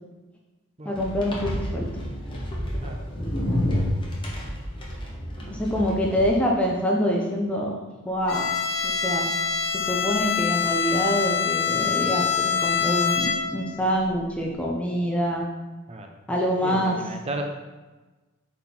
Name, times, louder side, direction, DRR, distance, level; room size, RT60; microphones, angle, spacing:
voice 1, 0.8-1.8 5.5-7.8 8.0-8.5 8.8-9.3 9.7-15.5 16.3-17.0, equal, 5° left, -2 dB, 0.7 m, -25 dB
sound 1, 0.9-6.3, left 1 dB, 25° left, 1.0 m, -29 dB
Bowed string instrument, 8.3-13.7, left 7 dB, 75° left, 1.2 m, -25 dB
voice 2, 16.6-17.4, right 2 dB, 30° right, 3 dB, 0.7 m, -34 dB
5.6 x 4.2 x 4.3 m, 1.2 s
head